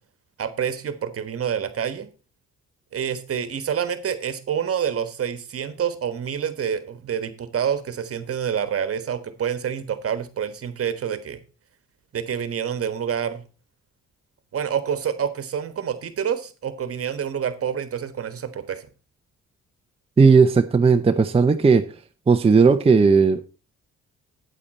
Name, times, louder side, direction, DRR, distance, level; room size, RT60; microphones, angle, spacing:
voice 1, 0.4-2.1 2.9-11.4 12.1-13.4 14.5-18.9, right 8 dB, 50° right, 11 dB, 1.4 m, -27 dB
voice 2, 20.2-21.8 22.3-23.4, right 5 dB, 20° right, 6 dB, 0.6 m, -16 dB
8.7 x 8.5 x 4.2 m, 0.32 s
cardioid pair, 90°, 30 cm